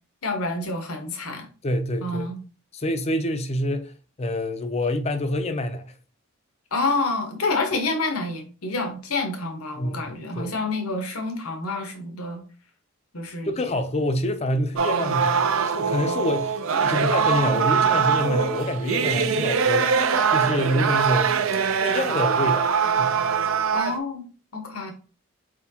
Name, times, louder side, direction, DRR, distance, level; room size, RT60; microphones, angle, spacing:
voice 1, 0.2-1.5 2.0-2.4 6.7-12.4 13.1-13.7 23.7-24.3 24.5-24.9, left 3 dB, 80° left, 1.2 m, -28 dB
voice 2, 1.6-2.3 2.7-3.9 4.2-5.9 9.8-10.5 13.5-19.9 20.3-21.4 21.8-23.3, left 1 dB, 30° left, 0.5 m, -27 dB
sound 1, 14.8-24.0, right 6 dB, 65° right, 0.5 m, -22 dB
4.5 x 4.2 x 2.8 m
head